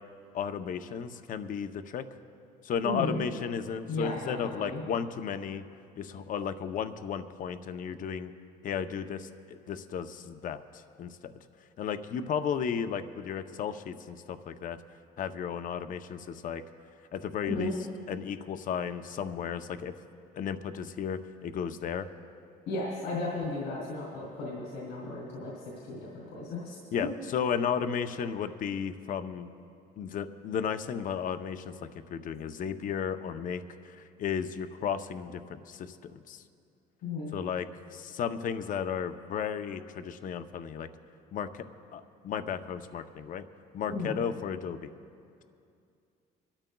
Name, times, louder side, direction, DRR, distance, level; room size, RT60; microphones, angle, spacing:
voice 1, 0.3-2.0 2.6-5.7 6.0-8.3 8.6-11.3 11.8-14.8 15.2-16.6 17.1-17.7 18.1-19.9 20.4-22.1 26.9-29.5 30.0-31.7 32.1-36.4 37.3-40.9 41.3-41.6 41.9-43.5 43.7-44.9, left 7 dB, 50° left, 9 dB, 0.6 m, -34 dB
voice 2, 2.8-3.2 3.9-4.8 17.4-17.7 22.7-26.8 37.0-37.3 43.9-44.2, left 2 dB, 90° left, -5 dB, 3.1 m, -35 dB
27.5 x 13.0 x 2.3 m, 2.5 s
cardioid pair, 110°, 17 cm